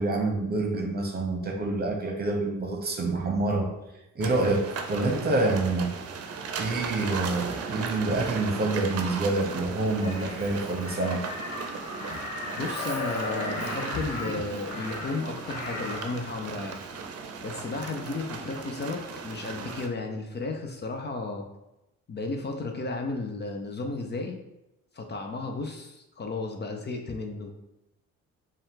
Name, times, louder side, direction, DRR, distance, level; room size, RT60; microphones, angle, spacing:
voice 1, 0.0-3.7 4.1-5.9 6.6-11.2, right 2 dB, 30° right, 2 dB, 0.9 m, -27 dB
sound 1, 4.2-19.9, right 5 dB, 55° right, 0.6 m, -37 dB
Crow, 9.8-16.2 17.6-17.8, left 2 dB, 85° left, 1.2 m, -36 dB
voice 2, 12.5-16.8 17.4-21.4 22.1-24.4 24.9-27.5, left 3 dB, 35° left, 3 dB, 0.6 m, -33 dB
5.2 x 2.4 x 3.7 m, 0.93 s
cardioid pair, 90°, 30 cm